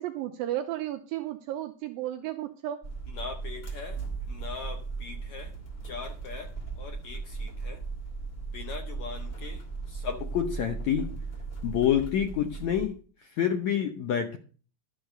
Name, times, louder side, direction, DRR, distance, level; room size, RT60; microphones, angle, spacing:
voice 1, 0.0-2.8, right 13 dB, 80° right, 2.3 m, -33 dB
sound 1, 2.8-12.9, right 4 dB, 20° left, 2.0 m, -37 dB
voice 2, 3.2-4.0 4.3-5.5 5.8-6.5 6.8-7.8 8.5-9.6 9.9-11.2 11.6-14.4, left 9 dB, 85° left, 1.5 m, -31 dB
12.5 x 6.5 x 6.5 m
omnidirectional pair, 4.4 m